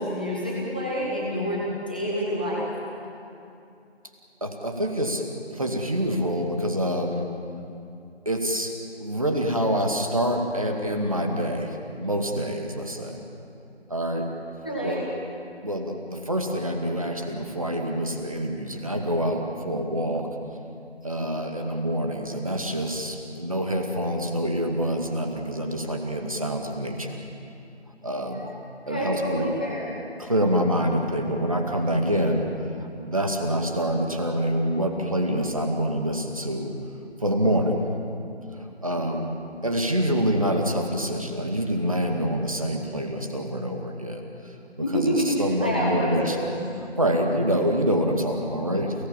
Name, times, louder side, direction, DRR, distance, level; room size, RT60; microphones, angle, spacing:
voice 1, 0.0-2.7 14.6-15.0 28.3-28.4 28.8-29.9 44.8-46.6, equal, 10° left, -6 dB, 1.6 m, -27 dB
voice 2, 4.4-5.2 5.5-7.3 8.3-8.7 9.0-13.2 13.9-14.3 14.8-15.0 15.6-20.3 21.0-27.1 28.0-28.5 28.9-29.5 30.2-32.5 32.8-36.7 37.2-37.8 38.6-39.3 39.6-44.2 44.9-46.4 46.7-48.9, equal, 30° right, 2 dB, 2.1 m, -26 dB
29.0 x 18.5 x 7.4 m, 2.6 s
figure-of-eight pair, 170°, 33 cm